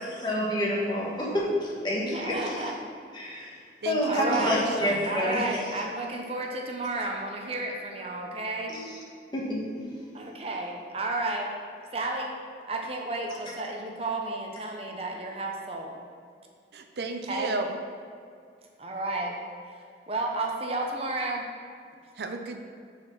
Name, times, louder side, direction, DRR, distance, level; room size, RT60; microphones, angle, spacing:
voice 1, 0.0-2.6 3.1-3.6 3.8-5.6 8.7-9.0 9.3-9.8, equal, 25° left, -4 dB, 1.3 m, -28 dB
voice 2, 2.0-2.8 4.0-4.7 5.1-8.8 10.1-11.5 11.9-12.3 12.7-16.0 17.3-17.6 18.8-19.3 20.1-21.4, right 2 dB, 35° right, 1 dB, 0.7 m, -32 dB
voice 3, 3.8-5.0 16.7-17.7 22.2-22.6, right 3 dB, 70° right, 5 dB, 0.5 m, -34 dB
6.3 x 4.3 x 6.0 m, 2.2 s
head